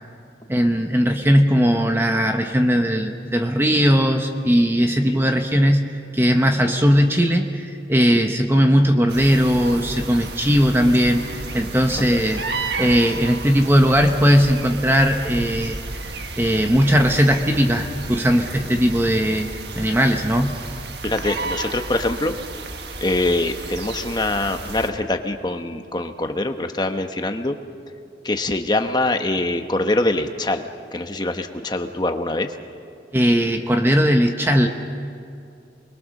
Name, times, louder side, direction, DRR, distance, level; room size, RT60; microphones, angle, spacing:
voice 1, 0.5-12.4 12.8-19.5 19.7-20.6 33.1-34.7, equal, 15° right, 5 dB, 1.0 m, -18 dB
sound 1, 9.1-24.9, right 3 dB, 70° right, 1.6 m, -32 dB
voice 2, 21.0-22.4 23.0-27.6 28.2-32.5, left 2 dB, 25° left, 6 dB, 1.1 m, -24 dB
28.5 x 22.0 x 6.5 m, 2.6 s
head